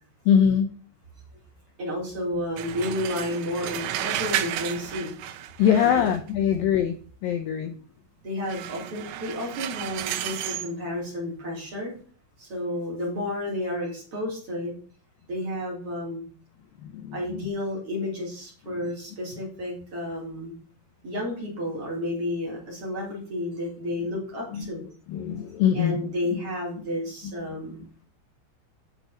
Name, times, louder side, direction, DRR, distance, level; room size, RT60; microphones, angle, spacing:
voice 1, 0.3-0.7 5.6-7.0 7.2-7.7 16.8-17.4 24.5-24.7 25.1-26.0, left 8 dB, 85° left, 7 dB, 2.0 m, -22 dB
voice 2, 1.8-5.1 5.8-6.1 8.2-11.9 12.4-14.7 15.3-16.2 17.1-20.5 21.0-24.8 25.7-27.8, left 1 dB, 35° right, -4 dB, 4.4 m, -31 dB
sound 1, 2.6-6.3 8.5-10.7, right 11 dB, 90° right, 3.1 m, -32 dB
10.5 x 7.2 x 4.1 m, 0.42 s
omnidirectional pair, 5.0 m